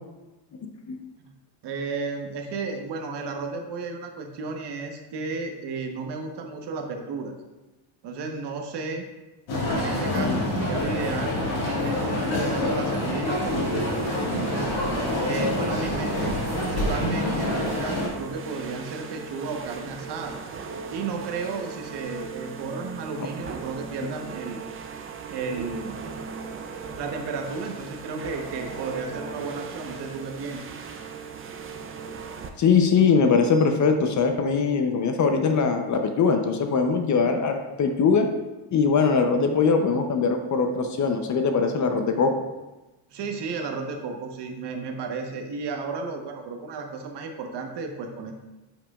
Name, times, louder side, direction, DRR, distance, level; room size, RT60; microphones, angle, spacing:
voice 1, 1.6-7.3 8.0-9.1 9.7-13.9 14.3-14.7 15.2-20.4 20.9-24.6 25.3-25.9 26.9-30.6 43.1-48.3, right 4 dB, 55° right, 3 dB, 1.1 m, -33 dB
sound 1, 9.5-18.1, left 1 dB, 65° left, 2.3 m, -26 dB
voice 2, 10.1-10.5 10.7-10.9 32.6-38.3 38.7-42.3, left 5 dB, 35° left, 5 dB, 0.7 m, -22 dB
sound 2, 13.2-32.5, right 5 dB, 25° right, 0.5 m, -38 dB
9.5 x 6.0 x 2.4 m, 1.1 s
cardioid pair, 120°, 50 cm